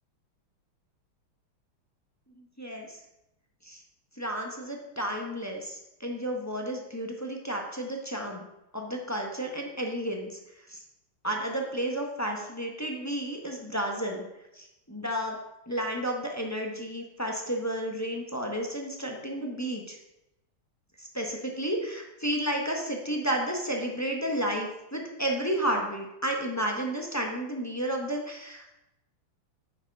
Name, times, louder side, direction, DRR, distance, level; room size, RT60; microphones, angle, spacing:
voice 1, 2.6-3.0 3.6-3.8 4.2-8.4 8.7-10.3 10.7-10.8 11.2-14.3 14.5-15.4 15.7-20.0 21.0-28.6, right 1 dB, 10° left, 1 dB, 0.9 m, -32 dB
9.0 x 7.1 x 5.4 m, 0.90 s
omnidirectional pair, 2.4 m